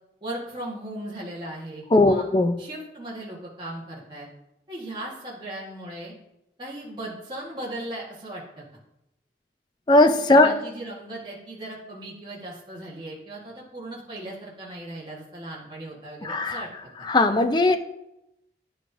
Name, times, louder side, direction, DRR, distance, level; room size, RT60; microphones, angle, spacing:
voice 1, 0.2-2.3 2.6-4.3 4.7-6.1 6.6-8.6 10.3-16.7 17.0-17.1, right 1 dB, 25° right, -6 dB, 1.4 m, -37 dB
voice 2, 1.9-2.6 9.9-10.5 16.2-16.7 17.1-17.8, left 2 dB, 25° left, 8 dB, 0.4 m, -18 dB
10.5 x 4.7 x 2.6 m, 0.86 s
head